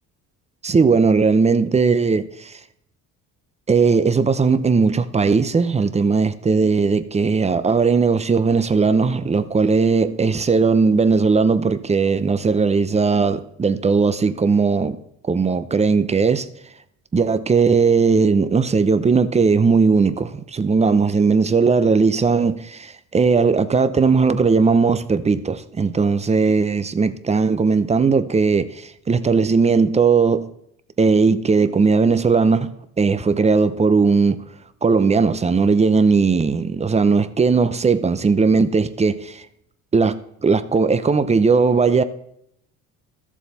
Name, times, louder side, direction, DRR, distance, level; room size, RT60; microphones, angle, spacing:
voice 1, 0.6-2.6 3.7-15.0 15.3-16.5 17.1-30.5 31.0-34.4 34.8-39.4 39.9-42.0, right 4 dB, 20° right, 0.7 m, -18 dB
13.5 x 7.3 x 4.1 m
supercardioid pair, 95°, 34 cm